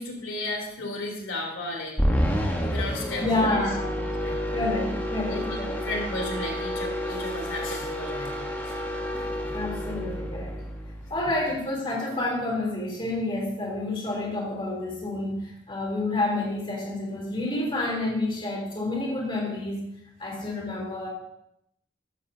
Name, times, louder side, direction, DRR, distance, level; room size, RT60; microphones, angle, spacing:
voice 1, 0.0-2.0 2.6-3.7 4.2-4.8 5.3-5.6 5.8-8.7 9.4-9.5 11.3-11.4 20.3-20.4, left 1 dB, 90° left, 1 dB, 3.3 m, -34 dB
sound 1, 2.0-11.4, equal, 10° left, 1.2 m, -30 dB
voice 2, 3.2-4.0 4.5-5.9 9.5-10.6 11.1-19.8 20.2-21.1, left 2 dB, 25° left, -2 dB, 3.3 m, -29 dB
15.0 x 13.0 x 2.8 m, 0.76 s
head